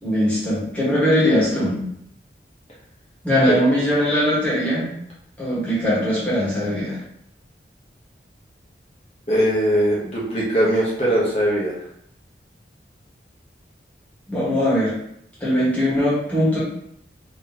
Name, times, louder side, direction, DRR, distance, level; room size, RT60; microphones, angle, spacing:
voice 1, 0.0-1.8 3.2-4.9 5.4-7.0 14.3-14.9 15.4-16.6, equal, 10° left, -10 dB, 1.5 m, -20 dB
voice 2, 9.3-11.7, equal, 35° left, -6 dB, 1.0 m, -20 dB
3.7 x 3.0 x 2.9 m, 0.72 s
head